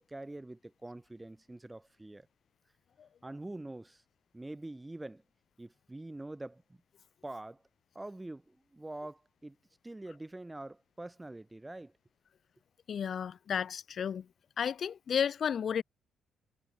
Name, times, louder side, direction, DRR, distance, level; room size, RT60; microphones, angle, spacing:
voice 1, 0.0-2.3 3.2-4.0 4.3-5.2 5.6-6.6 7.2-7.6 7.9-9.6 9.8-11.9, right 2 dB, 15° right, 4.3 m, -45 dB
voice 2, 12.9-14.2 14.6-15.8, left 7 dB, 55° left, 1.1 m, -32 dB
cardioid pair, 90°, 0 cm